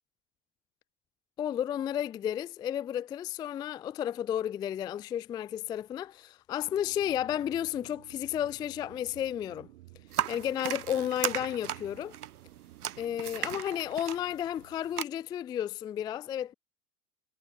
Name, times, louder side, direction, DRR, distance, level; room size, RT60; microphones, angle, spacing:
voice 1, 1.4-9.7 10.3-12.1 13.0-16.5, left 10 dB, 10° left, 0.4 m, -32 dB
sound 1, 6.6-13.6, right 18 dB, 55° right, 6.3 m, -54 dB
sound 2, 10.1-15.0, right 10 dB, 70° right, 0.9 m, -36 dB
figure-of-eight pair, 85°, 46 cm